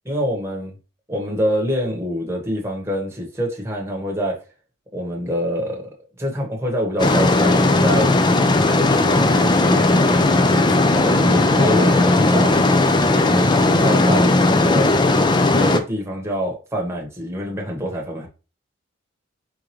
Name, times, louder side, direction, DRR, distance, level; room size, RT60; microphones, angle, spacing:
voice 1, 0.1-0.7 1.1-4.4 4.9-5.8 6.2-8.1 8.7-12.6 13.2-14.9 15.5-18.3, equal, 15° right, 0 dB, 1.2 m, -25 dB
sound 1, 7.0-15.8, left 2 dB, 20° left, 0.3 m, -16 dB
4.7 x 3.6 x 3.1 m, 0.33 s
head